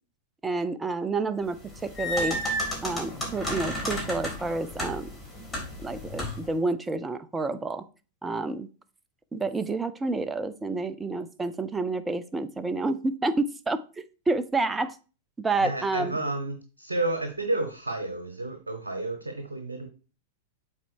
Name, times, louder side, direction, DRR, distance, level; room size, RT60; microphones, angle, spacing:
voice 1, 0.4-2.4 2.8-5.1 5.8-7.8 8.2-8.7 9.3-15.0 15.4-16.2, right 3 dB, 15° right, 12 dB, 0.7 m, -29 dB
sound 1, 1.6-6.5, equal, 10° left, 3.4 m, -33 dB
voice 2, 15.6-19.9, right 2 dB, 85° right, 6 dB, 0.9 m, -31 dB
7.5 x 4.1 x 4.7 m, 0.35 s
figure-of-eight pair, 95°, 0 cm